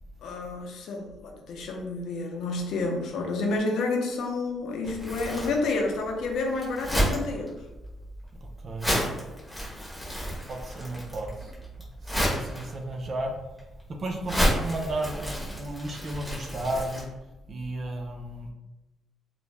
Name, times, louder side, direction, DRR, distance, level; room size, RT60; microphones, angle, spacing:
voice 1, 0.2-7.5, left 3 dB, 75° left, 2 dB, 0.5 m, -29 dB
Crumpling crinkling, 4.8-17.0, equal, 5° right, 1.1 m, -31 dB
voice 2, 8.6-8.9 10.5-11.5 12.1-13.3 14.0-17.1 17.5-18.5, right 1 dB, 50° right, 2 dB, 0.5 m, -33 dB
2.4 x 2.1 x 3.1 m, 1.1 s
cardioid pair, 90°, 0 cm